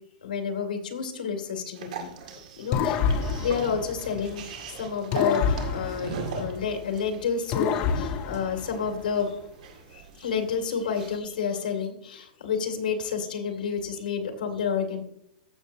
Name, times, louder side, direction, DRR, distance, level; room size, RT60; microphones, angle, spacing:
voice 1, 0.2-9.3 9.9-15.0, left 6 dB, 85° left, 4 dB, 2.3 m, -30 dB
sound 1, 1.7-11.2, right 5 dB, 60° right, 2.0 m, -41 dB
sound 2, 2.7-4.6 5.1-7.0 7.5-9.2, left 6 dB, 25° left, 0.6 m, -29 dB
15.0 x 6.8 x 2.7 m, 0.73 s
supercardioid pair, 165°, 5 cm